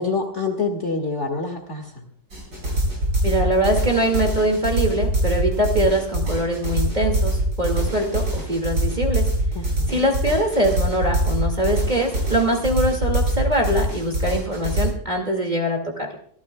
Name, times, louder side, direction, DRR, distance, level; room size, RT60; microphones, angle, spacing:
voice 1, 0.0-2.0 9.5-10.1, left 4 dB, 45° left, 3 dB, 2.0 m, -27 dB
sound 1, 2.3-14.8, right 1 dB, 80° right, 8.9 m, -23 dB
voice 2, 3.2-9.4 9.9-16.1, right 1 dB, 25° right, 1 dB, 2.2 m, -23 dB
26.5 x 13.5 x 2.3 m, 0.63 s
omnidirectional pair, 1.8 m